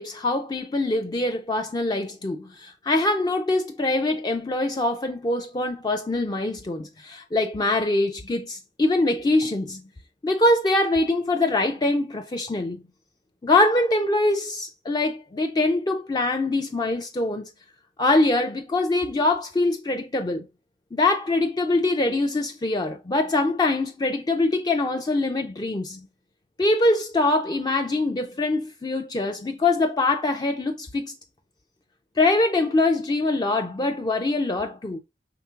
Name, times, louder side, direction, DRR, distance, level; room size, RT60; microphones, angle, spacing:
voice 1, 0.0-9.8 10.2-12.8 13.4-17.5 18.0-20.4 20.9-26.0 26.6-31.1 32.2-35.0, left 2 dB, 25° left, 0.4 m, -23 dB
5.8 x 3.6 x 2.4 m
head